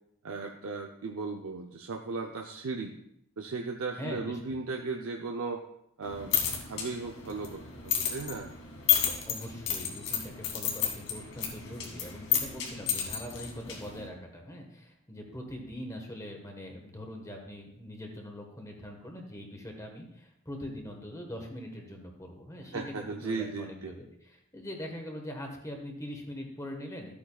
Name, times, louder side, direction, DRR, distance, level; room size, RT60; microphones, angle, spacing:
voice 1, 0.2-2.9 3.4-5.6 6.0-8.5 22.7-23.9, right 4 dB, 80° right, 3 dB, 0.6 m, -36 dB
voice 2, 4.0-4.4 9.3-27.1, left 1 dB, 15° left, 2 dB, 1.3 m, -42 dB
sound 1, 6.0-14.1, left 9 dB, 75° left, 2.0 m, -32 dB
13.0 x 8.5 x 2.3 m, 0.76 s
head